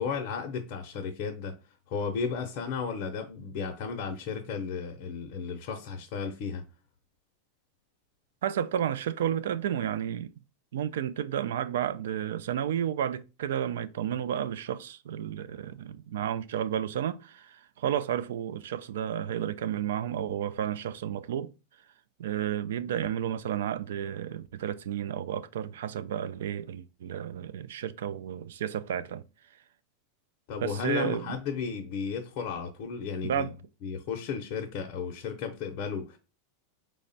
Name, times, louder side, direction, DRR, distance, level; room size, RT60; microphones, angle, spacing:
voice 1, 0.0-1.6 1.9-6.6 30.5-33.5 33.8-36.2, left 6 dB, 45° left, 0.6 m, -34 dB
voice 2, 8.4-10.3 10.7-21.5 22.2-29.2 30.6-31.4 33.2-33.5, right 10 dB, 85° right, 0.3 m, -32 dB
3.4 x 2.1 x 3.9 m
supercardioid pair, 155°, 0 cm